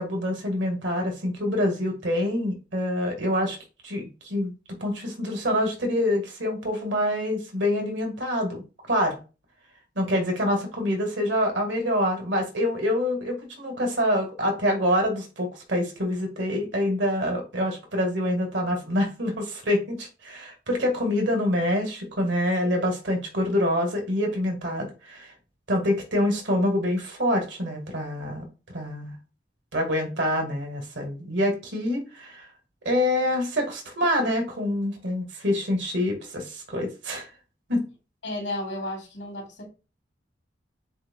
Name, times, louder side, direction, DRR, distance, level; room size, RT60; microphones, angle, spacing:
voice 1, 0.0-3.6 3.8-9.2 9.9-25.3 25.7-28.4 28.7-29.2 29.7-32.5 32.8-37.3 37.7-37.8, left 1 dB, 80° right, 1.8 m, -26 dB
voice 2, 38.2-39.7, left 1 dB, 90° left, 2.6 m, -33 dB
7.6 x 2.7 x 2.2 m
head